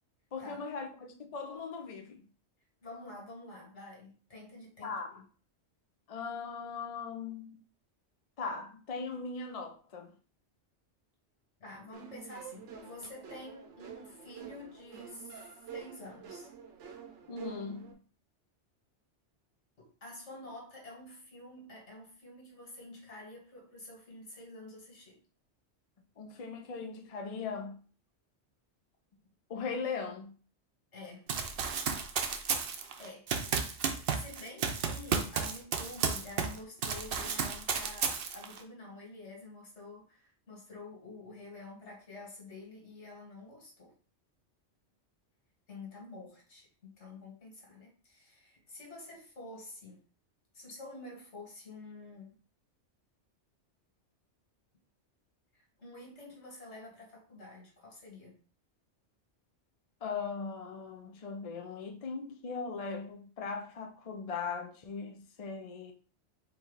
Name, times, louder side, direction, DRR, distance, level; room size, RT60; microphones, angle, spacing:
voice 1, 0.3-2.2 4.8-5.1 6.1-7.6 8.4-10.1 17.3-18.0 26.2-27.8 29.5-30.4 60.0-65.9, left 5 dB, 40° left, 0.5 m, -39 dB
voice 2, 2.8-5.3 11.6-15.4 15.7-16.5 19.8-25.2 30.9-31.3 33.0-33.3 33.8-43.9 45.7-50.0 50.5-52.4 55.5-58.4, left 2 dB, 75° left, 2.0 m, -49 dB
sound 1, 11.9-17.9, right 7 dB, 80° right, 1.1 m, -48 dB
Run, 31.3-36.6 36.8-38.6, right 6 dB, 60° right, 0.8 m, -32 dB
4.6 x 2.7 x 3.9 m
omnidirectional pair, 1.2 m